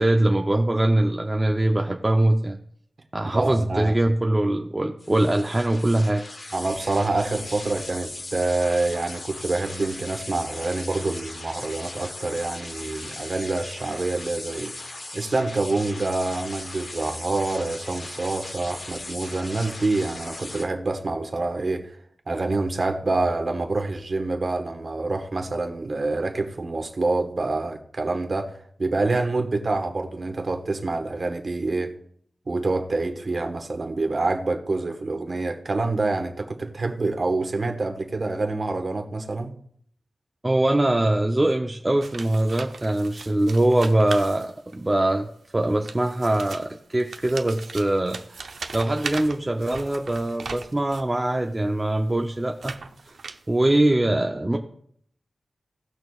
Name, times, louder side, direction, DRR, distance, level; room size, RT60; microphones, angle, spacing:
voice 1, 0.0-2.6 3.1-6.2 40.4-45.3 45.5-48.4 48.7-52.7 53.1-53.2 53.5-54.6, right 1 dB, 20° right, 2 dB, 0.6 m, -22 dB
voice 2, 3.3-3.9 6.5-14.7 15.1-22.0 22.3-31.9 32.5-39.5, right 3 dB, 45° right, 4 dB, 1.4 m, -26 dB
sound 1, 5.0-20.6, left 2 dB, 45° left, 1.1 m, -38 dB
sound 2, 42.0-44.9 45.6-51.2 51.8-53.7, right 4 dB, 75° right, 0.7 m, -39 dB
18.0 x 6.2 x 2.4 m, 0.64 s
wide cardioid pair, 115°, 0 cm